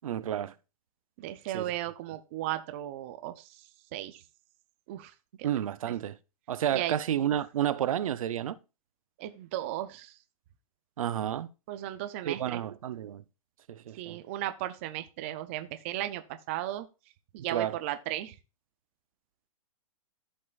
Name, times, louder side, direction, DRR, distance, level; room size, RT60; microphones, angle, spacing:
voice 1, 0.0-0.5 1.5-1.7 5.4-6.2 6.5-8.6 11.0-11.5 12.3-13.2 13.7-14.2 17.5-17.8, right 10 dB, 65° right, 0.6 m, -31 dB
voice 2, 1.2-4.2 4.9-5.1 5.4-5.5 6.7-6.9 9.2-10.2 11.7-12.6 14.0-16.9 17.3-18.3, right 13 dB, 20° right, 0.4 m, -35 dB
14.5 x 5.4 x 2.3 m
hypercardioid pair, 170°, 19 cm